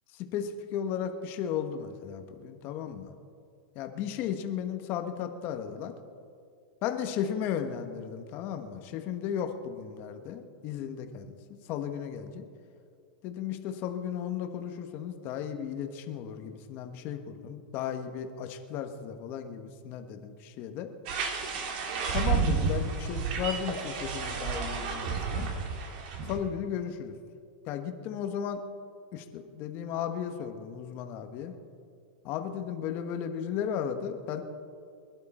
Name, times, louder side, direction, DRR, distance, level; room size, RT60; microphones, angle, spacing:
voice 1, 0.1-3.1 3.7-5.9 6.8-12.4 13.2-20.9 22.1-25.5 26.2-27.1 27.7-28.6 29.1-31.5 32.2-34.4, left 8 dB, 40° left, 6 dB, 1.4 m, -35 dB
sound 1, 21.1-26.4, right 5 dB, 55° right, 2.5 m, -31 dB
22.0 x 11.5 x 4.4 m, 2.3 s
supercardioid pair, 145°, 5 cm